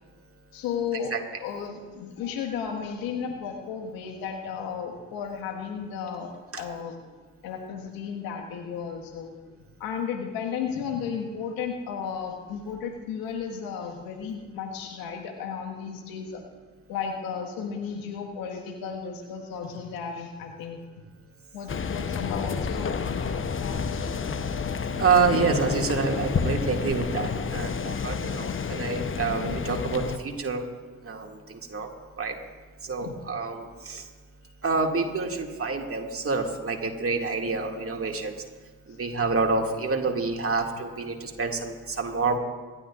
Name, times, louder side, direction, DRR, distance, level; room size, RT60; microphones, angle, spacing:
voice 1, 0.5-1.1 1.4-7.0 7.4-9.3 9.8-16.4 16.9-20.8 21.5-24.1 33.0-33.1 40.0-40.1, left 6 dB, 75° left, 2 dB, 1.7 m, -34 dB
sound 1, 21.7-30.2, left 5 dB, 35° left, 0.9 m, -30 dB
voice 2, 25.0-30.7 31.0-31.9 32.2-32.4 32.8-34.0 34.6-38.4 38.9-42.4, right 4 dB, 40° right, 2 dB, 2.2 m, -27 dB
26.0 x 12.0 x 2.5 m, 1.4 s
hypercardioid pair, 45°, 35 cm